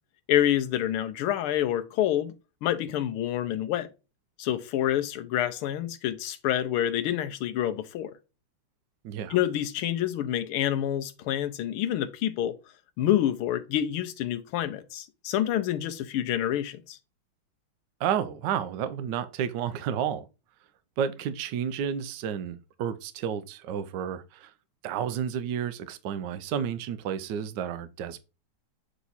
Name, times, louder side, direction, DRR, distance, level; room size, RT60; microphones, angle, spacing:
voice 1, 0.3-2.3 2.6-3.9 4.4-8.1 9.3-12.5 13.0-17.0, left 11 dB, 90° left, 1.6 m, -27 dB
voice 2, 9.0-9.4 18.0-20.3 21.0-24.5 24.8-28.2, right 8 dB, 70° right, 1.2 m, -31 dB
8.1 x 3.0 x 4.0 m
omnidirectional pair, 2.3 m